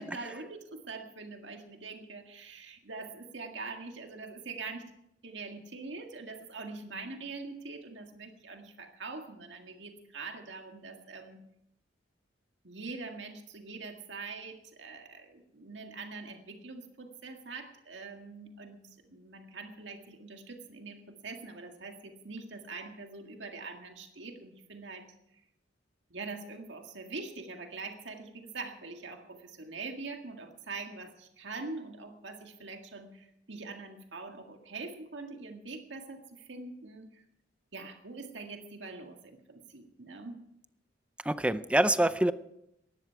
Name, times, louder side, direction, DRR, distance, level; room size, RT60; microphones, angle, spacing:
voice 1, 0.0-4.9 5.2-11.4 12.6-25.1 26.1-37.2 37.7-40.4, right 3 dB, 70° right, 4 dB, 1.9 m, -43 dB
voice 2, 41.2-42.3, right 1 dB, 5° right, 13 dB, 0.5 m, -26 dB
19.0 x 13.5 x 4.7 m, 0.81 s
head